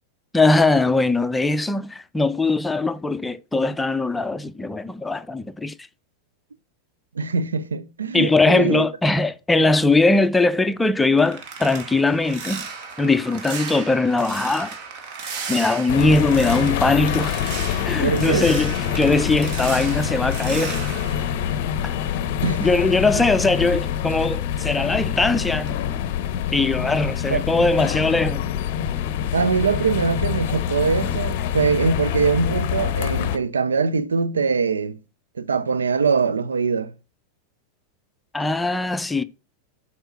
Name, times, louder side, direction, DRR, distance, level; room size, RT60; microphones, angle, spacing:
voice 1, 0.3-5.7 8.1-12.7 13.0-14.7 15.5-17.4 17.8-20.8 21.8-21.9 22.4-25.7 26.5-28.5 38.3-39.2, left 3 dB, 10° left, 0.5 m, -20 dB
voice 2, 7.1-8.9 18.0-18.5 22.4-22.7 27.3-27.4 29.3-35.0 35.4-36.9, right 5 dB, 70° right, 0.5 m, -22 dB
sound 1, 10.6-22.3 22.6-25.3 25.6-25.9 26.3-26.6, right 5 dB, 45° right, 1.5 m, -36 dB
sound 2, 15.9-33.4, left 9 dB, 50° left, 0.6 m, -25 dB
8.0 x 4.3 x 6.1 m
figure-of-eight pair, 90°, 0 cm